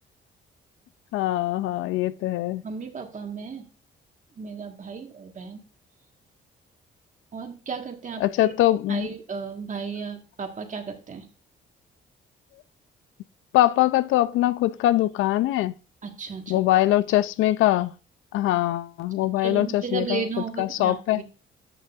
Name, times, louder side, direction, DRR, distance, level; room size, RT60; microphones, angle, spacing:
voice 1, 1.1-2.6 8.2-9.1 13.5-15.7 16.5-17.9 18.3-20.2 20.6-21.2, left 14 dB, 85° left, 0.4 m, -22 dB
voice 2, 2.6-3.7 4.3-5.6 7.3-8.5 8.9-11.3 16.0-16.6 19.4-21.2, right 5 dB, 40° right, 1.5 m, -34 dB
11.0 x 6.0 x 2.4 m
cardioid pair, 90°, 20 cm